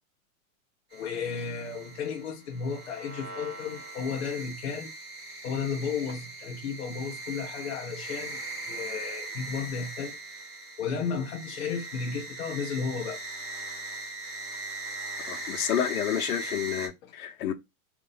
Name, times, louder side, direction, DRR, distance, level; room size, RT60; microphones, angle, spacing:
voice 1, 0.9-4.9 5.4-10.2 10.8-13.2 17.0-17.1, left 6 dB, 45° left, 0.7 m, -33 dB
sound 1, 0.9-16.9, right 2 dB, 10° right, 1.5 m, -40 dB
voice 2, 15.3-17.5, left 9 dB, 70° left, 0.9 m, -30 dB
3.8 x 2.7 x 3.9 m
supercardioid pair, 175°, 45 cm